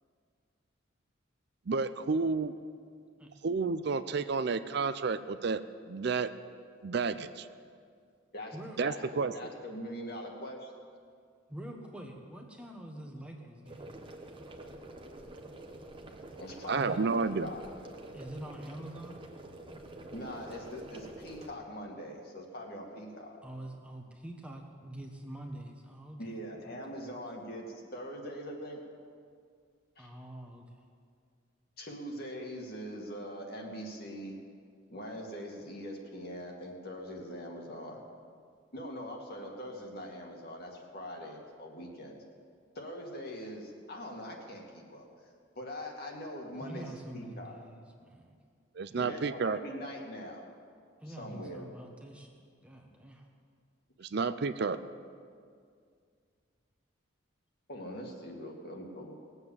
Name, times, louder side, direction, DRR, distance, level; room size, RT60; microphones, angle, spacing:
voice 1, 1.7-2.5 3.4-5.6 5.9-6.3 6.8-7.5 8.8-9.3 16.7-17.5 48.8-49.6 54.0-54.8, right 4 dB, 55° right, 12 dB, 0.5 m, -30 dB
voice 2, 8.3-10.7 16.4-17.6 20.1-23.4 26.2-28.8 30.0-30.1 31.8-34.4 34.9-38.0 38.7-42.2 42.7-45.0 45.6-47.5 48.9-50.5 51.1-51.7 57.7-59.1, equal, 50° left, 0 dB, 2.3 m, -42 dB
voice 3, 11.5-14.2 16.7-17.0 18.1-19.2 23.4-26.2 26.6-26.8 30.0-30.7 46.6-48.4 48.9-49.1 51.0-53.3, right 1 dB, 5° right, 1 dB, 1.2 m, -45 dB
sound 1, 13.7-21.5, right 1 dB, 25° right, 1.1 m, -47 dB
19.5 x 8.1 x 7.3 m, 2.2 s
head